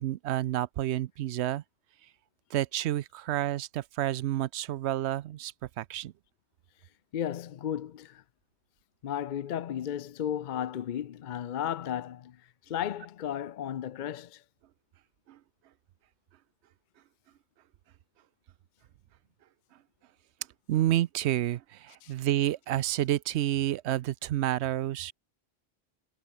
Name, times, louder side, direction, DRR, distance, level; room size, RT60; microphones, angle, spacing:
voice 1, 0.0-1.6 2.5-6.1 15.3-15.4 20.7-25.1, right 13 dB, 80° right, 0.8 m, -29 dB
voice 2, 7.1-8.2 9.0-14.4 22.0-22.1, left 10 dB, 55° left, 0.6 m, -34 dB
omnidirectional pair, 1.1 m